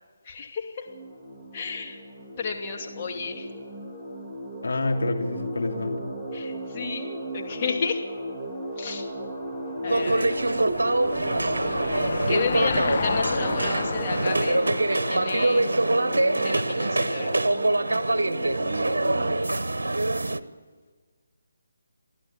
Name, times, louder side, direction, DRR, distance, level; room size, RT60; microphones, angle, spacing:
voice 1, 0.2-0.8 1.5-2.0 2.4-3.5 6.3-7.1 7.3-8.0 8.8-9.1 9.8-10.5 12.3-14.6 14.9-15.7 16.4-17.5, left 5 dB, 30° left, 0 dB, 2.7 m, -32 dB
sound 1, 0.9-19.3, equal, 5° left, 2.8 m, -35 dB
voice 2, 4.6-6.0, left 2 dB, 70° left, 2 dB, 3.1 m, -28 dB
Car passing by / Engine, 9.6-16.4, left 5 dB, 45° left, 0.9 m, -33 dB
sound 2, 9.9-20.4, right 2 dB, 75° right, 1.0 m, -24 dB
28.5 x 11.5 x 8.2 m, 1.5 s
figure-of-eight pair, 150°, 0 cm